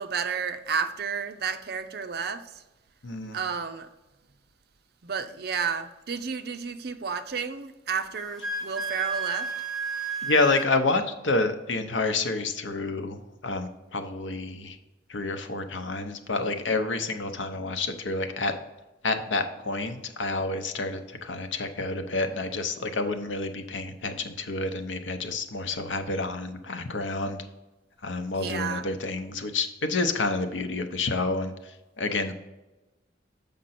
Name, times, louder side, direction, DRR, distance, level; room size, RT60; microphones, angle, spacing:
voice 1, 0.0-2.4 3.3-3.9 5.0-9.5 28.4-28.9, right 6 dB, 55° right, 0.6 m, -31 dB
voice 2, 3.0-3.4 10.2-14.8 15.1-18.5 19.0-27.4 28.0-32.3, left 3 dB, 80° left, 0.8 m, -29 dB
Wind instrument woodwind instrument, 8.1-10.7, right 4 dB, ahead, 1.4 m, -31 dB
7.7 x 5.1 x 4.2 m
head